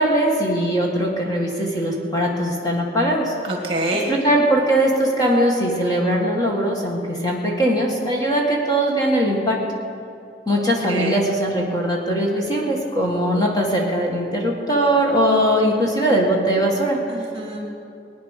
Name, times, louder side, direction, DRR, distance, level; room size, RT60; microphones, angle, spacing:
voice 1, 0.0-3.3 4.1-9.6 10.5-17.0, right 1 dB, 20° left, -2 dB, 1.8 m, -20 dB
voice 2, 3.4-4.1 10.5-11.2 17.1-17.6, right 1 dB, 30° right, 1 dB, 2.3 m, -27 dB
20.5 x 9.5 x 6.6 m, 2.6 s
head